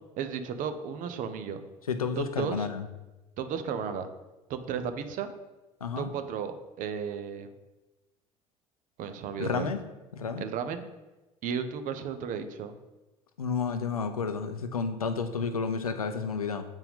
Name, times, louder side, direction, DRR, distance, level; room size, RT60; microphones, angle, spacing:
voice 1, 0.2-1.6 2.2-2.7 3.4-4.1 4.5-5.3 6.0-7.5 9.0-9.7 10.4-10.9 11.4-12.7, right 7 dB, 50° right, 9 dB, 0.7 m, -34 dB
voice 2, 1.9-2.9 5.8-6.1 9.4-9.8 10.1-10.5 13.4-16.7, left 5 dB, 85° left, 9 dB, 0.4 m, -31 dB
7.8 x 4.5 x 3.6 m, 1.1 s
figure-of-eight pair, 60°, 18 cm